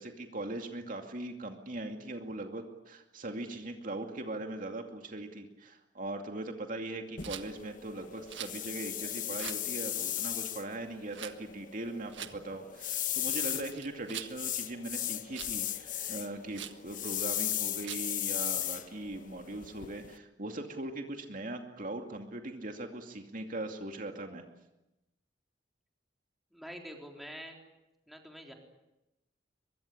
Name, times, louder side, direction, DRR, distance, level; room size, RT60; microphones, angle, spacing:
voice 1, 0.0-24.4, right 2 dB, 50° right, 4 dB, 2.4 m, -40 dB
sound 1, 7.2-20.2, left 12 dB, 45° left, 1.1 m, -37 dB
Rattle, 7.2-7.5 8.3-8.6 9.3-9.6 11.1-11.3 12.1-12.3 13.2-14.3 15.3-15.6 16.5-16.8 17.8-18.1, right 10 dB, 85° right, 1.6 m, -43 dB
voice 2, 26.5-27.6 28.1-28.5, equal, ahead, 2 dB, 3.9 m, -46 dB
23.5 x 23.5 x 10.0 m, 0.94 s
head